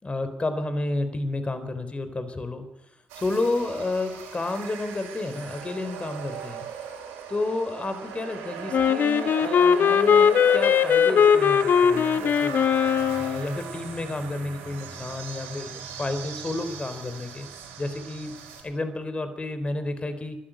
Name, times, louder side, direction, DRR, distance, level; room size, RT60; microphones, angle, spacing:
voice 1, 0.0-2.6 3.2-6.7 7.3-12.6 13.2-17.5 17.8-18.3 18.6-20.4, left 2 dB, 30° left, 10 dB, 3.9 m, -31 dB
sound 1, 3.1-18.6, right 6 dB, 80° right, 6.6 m, -38 dB
Wind instrument woodwind instrument, 8.7-13.5, left 7 dB, 60° left, 1.1 m, -20 dB
22.0 x 13.5 x 8.9 m, 0.88 s
hypercardioid pair, 45°, 4 cm